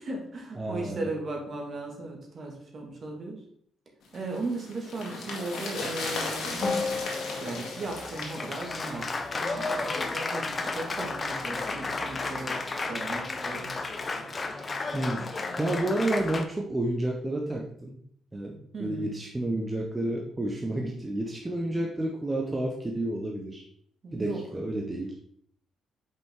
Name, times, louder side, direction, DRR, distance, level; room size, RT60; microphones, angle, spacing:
voice 1, 0.0-3.4 4.1-6.8 7.4-12.6 12.9-13.7 18.7-19.2 24.0-24.4, right 2 dB, 50° right, 1 dB, 2.0 m, -36 dB
voice 2, 0.6-1.1 14.9-18.0 18.3-23.6 24.1-25.1, right 1 dB, 20° right, 0 dB, 1.0 m, -30 dB
sound 1, 4.1-9.6 9.8-9.9, left 3 dB, 70° left, 1.9 m, -36 dB
Applause, 6.6-16.4, left 3 dB, 35° left, 0.8 m, -32 dB
5.6 x 5.1 x 3.7 m, 0.65 s
supercardioid pair, 70°, 0 cm